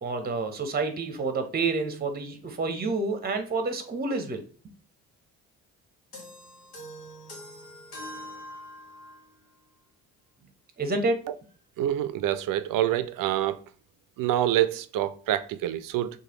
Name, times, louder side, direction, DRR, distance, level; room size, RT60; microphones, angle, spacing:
voice 1, 0.0-4.4 10.8-11.4, right 3 dB, 25° right, 0.7 m, -29 dB
sound 1, 6.1-9.3, left 1 dB, 85° left, 1.1 m, -43 dB
voice 2, 11.8-13.6 14.2-16.1, right 12 dB, 55° right, 0.5 m, -26 dB
3.1 x 2.2 x 2.9 m
hypercardioid pair, 55°, 39 cm